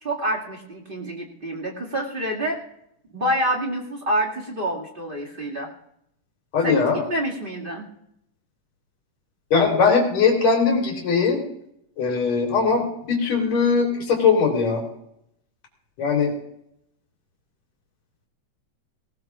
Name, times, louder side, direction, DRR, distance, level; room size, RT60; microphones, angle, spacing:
voice 1, 0.0-2.6 3.1-5.7 6.6-7.8, right 1 dB, 20° right, -2 dB, 1.7 m, -27 dB
voice 2, 6.5-7.0 9.5-11.4 12.0-14.8 16.0-16.3, left 5 dB, 55° left, 0 dB, 4.7 m, -20 dB
19.5 x 19.0 x 2.5 m, 0.76 s
omnidirectional pair, 3.8 m